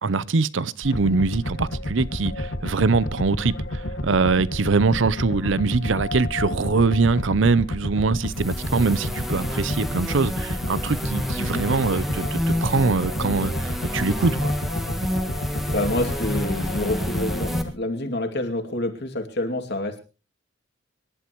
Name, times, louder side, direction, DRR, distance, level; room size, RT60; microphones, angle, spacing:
voice 1, 0.0-14.5, right 4 dB, 70° right, 0.6 m, -23 dB
sound 1, 0.8-17.7, left 1 dB, 85° left, 2.0 m, -30 dB
sound 2, 8.2-17.6, equal, ahead, 1.7 m, -29 dB
voice 2, 15.6-20.0, left 1 dB, 60° left, 2.5 m, -28 dB
26.0 x 11.5 x 3.1 m
head